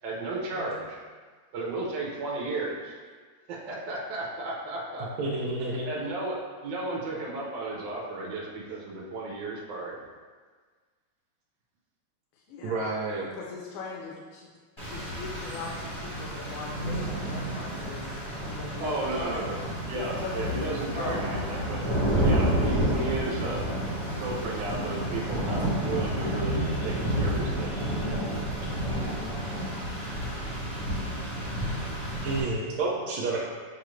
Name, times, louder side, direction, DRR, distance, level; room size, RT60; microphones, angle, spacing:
voice 1, 0.0-1.0 1.5-3.0 3.5-5.1 5.8-10.0 18.8-23.7 24.2-27.8, right 2 dB, 65° right, -4 dB, 1.3 m, -34 dB
voice 2, 5.2-5.9 12.6-13.3 32.2-33.4, right 3 dB, 90° right, -4 dB, 1.5 m, -30 dB
voice 3, 12.5-12.9 13.3-14.5 14.9-18.1 18.4-19.5 19.9-20.3 20.9-21.2, left 4 dB, 80° left, -2 dB, 1.4 m, -40 dB
Rain, 14.8-32.4, right 1 dB, 20° left, 0.8 m, -30 dB
6.8 x 2.5 x 3.1 m, 1.5 s
omnidirectional pair, 2.2 m